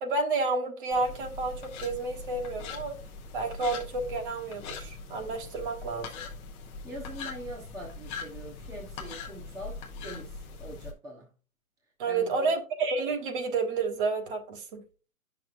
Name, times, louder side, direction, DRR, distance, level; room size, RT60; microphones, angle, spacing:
voice 1, 0.0-3.0 3.3-6.1 12.0-14.8, right 3 dB, 40° right, 1.5 m, -30 dB
sound 1, 0.9-10.9, left 4 dB, 15° left, 0.7 m, -42 dB
voice 2, 6.8-11.3 12.1-12.6, right 1 dB, 10° right, 1.0 m, -42 dB
9.4 x 6.1 x 2.6 m
hypercardioid pair, 140°, 41 cm